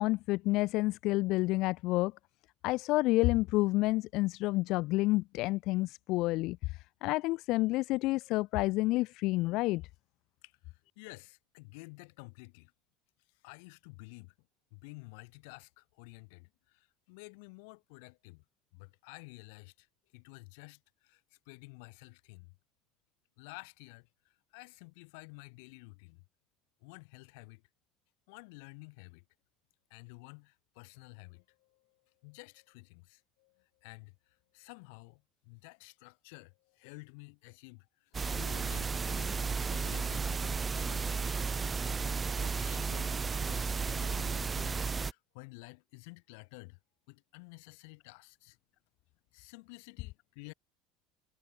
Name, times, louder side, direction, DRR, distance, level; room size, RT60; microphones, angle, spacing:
voice 1, 0.0-2.1 2.6-9.8, left 20 dB, 60° left, 0.9 m, -29 dB
voice 2, 10.4-12.7 13.3-14.3 14.7-18.4 18.7-19.9 20.1-22.6 23.4-26.2 26.8-27.6 28.3-29.2 29.9-39.4 39.7-41.3 42.4-43.2 43.4-46.8 47.1-48.6 49.3-50.5, left 31 dB, 80° left, 6.0 m, -52 dB
sound 1, 38.1-45.1, right 5 dB, 20° right, 0.5 m, -33 dB
cardioid pair, 130°, 0 cm